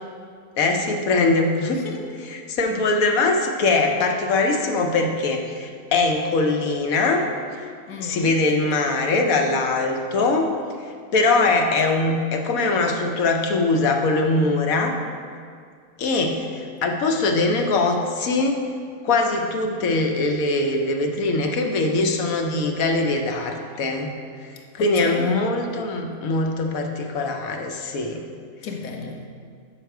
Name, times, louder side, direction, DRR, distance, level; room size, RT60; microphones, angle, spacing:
voice 1, 0.6-1.8 2.3-7.3 8.0-10.5 11.1-15.0 16.0-18.6 19.0-24.1 24.4-24.5 24.7-28.2, left 3 dB, 65° left, 3 dB, 1.1 m, -22 dB
voice 2, 1.7-2.2 7.9-8.3 24.8-25.4 28.6-29.3, left 4 dB, 90° left, 3 dB, 1.3 m, -34 dB
7.2 x 6.0 x 4.6 m, 2.2 s
omnidirectional pair, 1.6 m